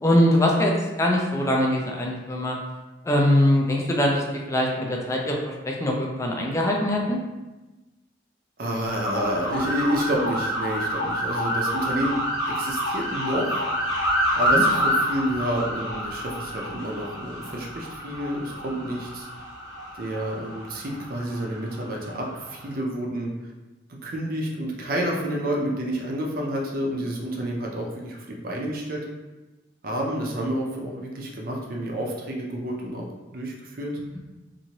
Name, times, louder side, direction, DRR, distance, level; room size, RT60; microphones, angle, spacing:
voice 1, 0.0-2.6 3.1-7.2 14.5-14.6, left 1 dB, 15° left, -1 dB, 0.4 m, -22 dB
voice 2, 8.6-12.2 12.5-13.6 14.3-19.3 20.0-23.3 24.0-29.0 29.8-33.1 33.3-33.9, equal, 50° right, -1 dB, 0.5 m, -29 dB
sound 1, 8.8-22.7, equal, 75° left, 0.9 m, -28 dB
2.8 x 2.6 x 2.8 m, 1.1 s
head